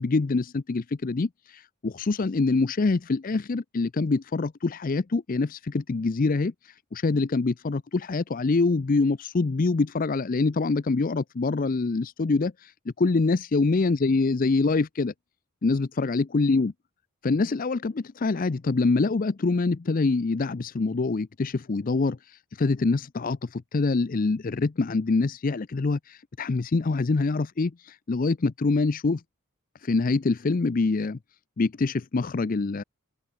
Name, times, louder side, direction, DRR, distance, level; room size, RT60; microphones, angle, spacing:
voice 1, 0.0-15.1 15.6-16.7 17.2-29.2 29.8-31.2 31.6-32.8, left 3 dB, 40° left, 0.5 m, -25 dB
head